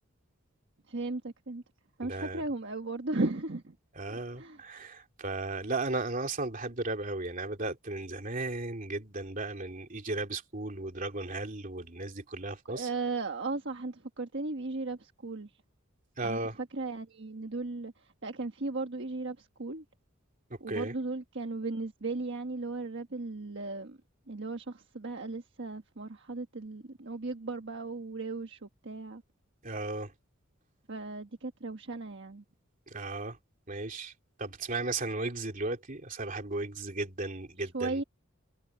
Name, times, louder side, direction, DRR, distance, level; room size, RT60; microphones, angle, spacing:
voice 1, 0.9-1.6 2.0-3.8 4.1-4.6 12.6-15.5 16.2-19.8 20.6-24.0 24.3-29.2 30.9-32.4 37.6-38.0, right 3 dB, 60° right, 1.4 m, -36 dB
voice 2, 2.0-2.4 4.0-12.9 16.2-16.6 20.7-20.9 29.6-30.1 32.9-33.4 33.7-34.1 34.4-38.0, right 2 dB, 40° right, 3.0 m, -35 dB
head